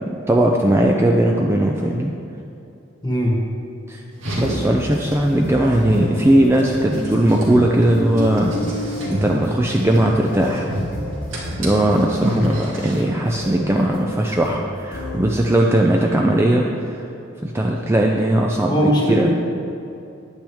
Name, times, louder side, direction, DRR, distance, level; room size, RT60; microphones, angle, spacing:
voice 1, 0.0-2.1 3.9-4.0 4.4-10.7 11.5-17.0 17.4-18.8 19.1-19.3, right 1 dB, 15° right, 0 dB, 0.4 m, -18 dB
voice 2, 3.0-3.4 12.2-12.5 18.7-19.3, equal, 20° left, -1 dB, 1.4 m, -19 dB
Car, 4.1-13.1, equal, 90° right, 2.2 m, -29 dB
sound 1, 4.4-15.6, left 1 dB, 85° left, 2.2 m, -34 dB
9.9 x 9.0 x 3.5 m, 2.7 s
head